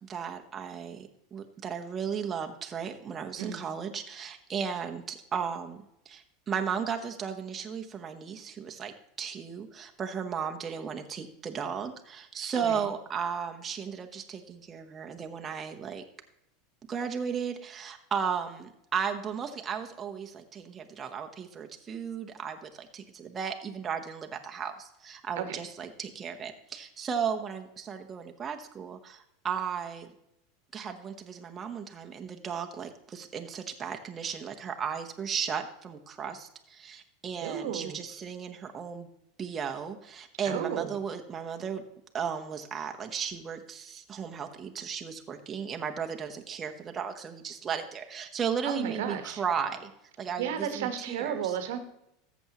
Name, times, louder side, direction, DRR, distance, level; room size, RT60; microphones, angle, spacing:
voice 1, 0.0-16.0 16.9-30.1 30.7-39.1 39.4-41.8 42.1-49.9 50.2-51.6, right 7 dB, 30° right, 4 dB, 1.0 m, -35 dB
voice 2, 12.5-12.9 25.4-25.6 37.4-38.0 40.4-40.9 48.6-49.4 50.4-51.8, right 8 dB, 70° right, 8 dB, 1.2 m, -33 dB
14.0 x 7.2 x 3.0 m, 0.80 s
hypercardioid pair, 95°, 0 cm